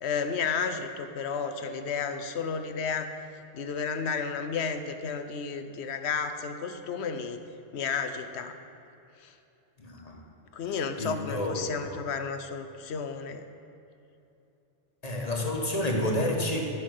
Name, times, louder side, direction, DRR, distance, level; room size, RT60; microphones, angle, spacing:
voice 1, 0.0-3.1 3.5-7.4 7.7-8.6 9.2-9.3 10.5-13.4, left 6 dB, 80° left, 9 dB, 1.0 m, -32 dB
voice 2, 9.8-10.2 11.0-11.5 15.0-16.7, left 1 dB, 35° left, 0 dB, 1.4 m, -29 dB
13.0 x 5.8 x 6.5 m, 2.8 s
omnidirectional pair, 1.1 m